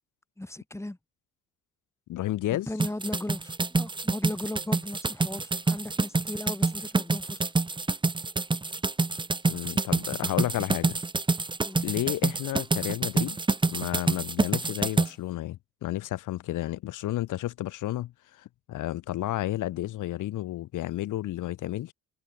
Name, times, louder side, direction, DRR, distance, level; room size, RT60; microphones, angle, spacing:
voice 1, 0.4-1.0 2.5-7.5 11.6-11.9, left 1 dB, 10° left, 5.9 m, -37 dB
voice 2, 2.1-2.7 9.5-11.0 11.8-13.4 13.7-18.1 18.4-21.9, left 14 dB, 85° left, 7.6 m, -32 dB
sound 1, 2.8-15.1, right 3 dB, 15° right, 1.0 m, -27 dB
cardioid pair, 90°, 30 cm